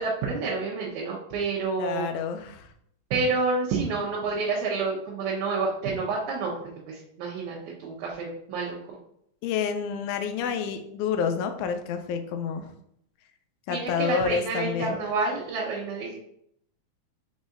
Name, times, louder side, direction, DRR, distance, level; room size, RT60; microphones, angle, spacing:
voice 1, 0.0-2.1 3.1-6.5 6.9-8.8 13.7-16.1, right 4 dB, 80° right, -5 dB, 2.2 m, -29 dB
voice 2, 1.8-2.7 9.4-12.7 13.7-15.0, left 6 dB, 85° left, 7 dB, 2.0 m, -29 dB
5.3 x 4.0 x 2.5 m, 0.73 s
omnidirectional pair, 3.4 m